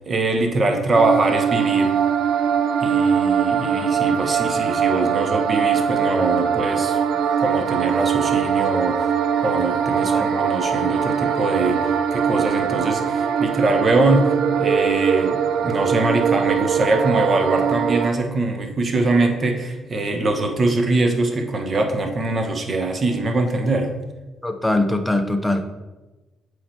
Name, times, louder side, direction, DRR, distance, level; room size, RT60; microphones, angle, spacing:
voice 1, 0.1-2.0 2.8-7.0 7.4-9.1 9.4-23.9, right 2 dB, 40° right, 4 dB, 1.0 m, -22 dB
sound 1, 0.9-18.1, right 7 dB, 80° right, 0.4 m, -21 dB
voice 2, 24.4-25.6, left 2 dB, 5° left, 7 dB, 0.7 m, -21 dB
8.5 x 3.3 x 4.4 m, 1.1 s
cardioid pair, 90°, 0 cm